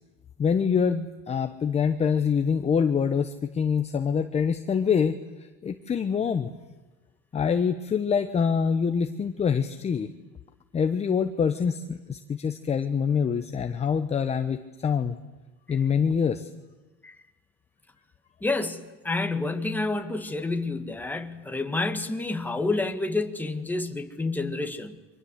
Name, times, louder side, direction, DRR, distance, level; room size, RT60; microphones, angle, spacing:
voice 1, 0.4-5.2 5.6-6.5 7.3-10.1 10.7-15.2 15.7-16.5, left 6 dB, 20° left, 8 dB, 1.0 m, -25 dB
voice 2, 18.4-25.0, left 3 dB, 5° left, 6 dB, 1.8 m, -29 dB
29.5 x 24.5 x 8.1 m, 1.1 s
supercardioid pair, 135°, 30 cm